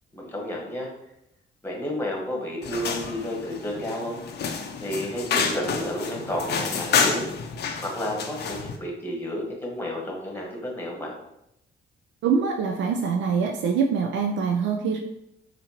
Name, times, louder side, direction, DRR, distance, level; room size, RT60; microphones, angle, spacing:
voice 1, 0.1-0.9 1.6-4.2 4.8-7.3 7.8-11.1, equal, 10° left, -2 dB, 1.2 m, -31 dB
sound 1, 2.6-8.8, left 5 dB, 55° left, 0.5 m, -29 dB
voice 2, 12.2-15.0, right 6 dB, 70° right, 2 dB, 0.4 m, -24 dB
4.2 x 2.6 x 2.8 m, 0.80 s
cardioid pair, 90°, 20 cm